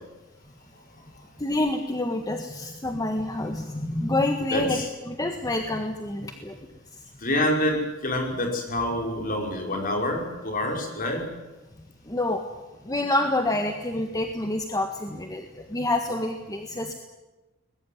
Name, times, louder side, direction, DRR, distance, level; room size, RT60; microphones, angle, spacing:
voice 1, 1.4-6.6 12.1-12.4 12.8-16.9, left 2 dB, 20° left, 4 dB, 1.6 m, -27 dB
voice 2, 4.5-4.9 7.2-11.2, left 1 dB, 45° left, 2 dB, 5.5 m, -27 dB
22.0 x 21.0 x 9.5 m, 1.1 s
head